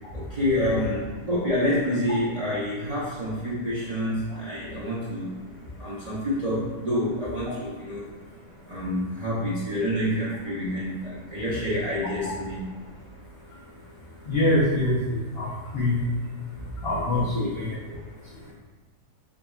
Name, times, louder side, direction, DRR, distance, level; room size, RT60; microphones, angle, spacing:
voice 1, 0.1-5.4 5.8-8.1 8.7-12.7 16.5-16.6 17.1-17.5, left 1 dB, 40° right, -8 dB, 0.5 m, -28 dB
voice 2, 14.3-16.0 16.8-17.7, left 1 dB, 55° left, -7 dB, 0.7 m, -24 dB
4.0 x 3.8 x 2.3 m, 1.2 s
omnidirectional pair, 1.7 m